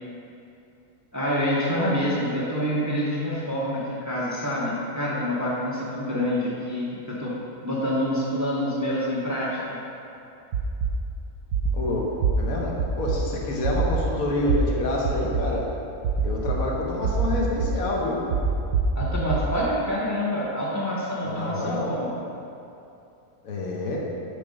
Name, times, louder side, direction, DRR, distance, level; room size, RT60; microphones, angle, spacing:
voice 1, 1.1-7.3 7.6-9.8 18.9-22.1, equal, 15° right, -6 dB, 0.7 m, -27 dB
sound 1, 10.5-10.9 11.5-11.8 12.2-12.3 12.8-13.2 13.6-14.0 14.5-14.6 15.0-15.4 16.0-16.6 17.0-17.7 18.3-19.4, right 8 dB, 90° right, 1.1 m, -23 dB
voice 2, 11.7-15.6 16.2-18.2 21.2-22.0 23.4-24.0, left 2 dB, 75° left, -2 dB, 1.4 m, -28 dB
6.8 x 3.8 x 5.1 m, 2.7 s
omnidirectional pair, 1.5 m